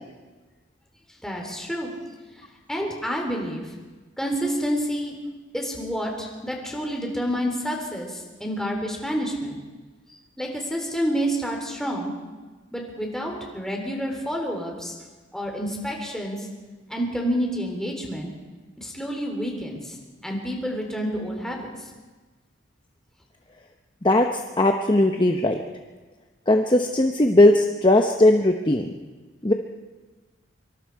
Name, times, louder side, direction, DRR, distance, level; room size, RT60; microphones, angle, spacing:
voice 1, 1.2-1.9 2.7-3.6 4.2-5.1 5.5-9.6 10.4-12.1 12.7-14.9 15.3-16.4 16.9-18.3 18.8-20.0 20.2-21.7, equal, 5° left, 0 dB, 3.7 m, -28 dB
voice 2, 24.6-25.6 26.5-28.9 29.4-29.5, left 1 dB, 25° left, 4 dB, 0.9 m, -18 dB
25.0 x 24.0 x 4.8 m, 1.3 s
head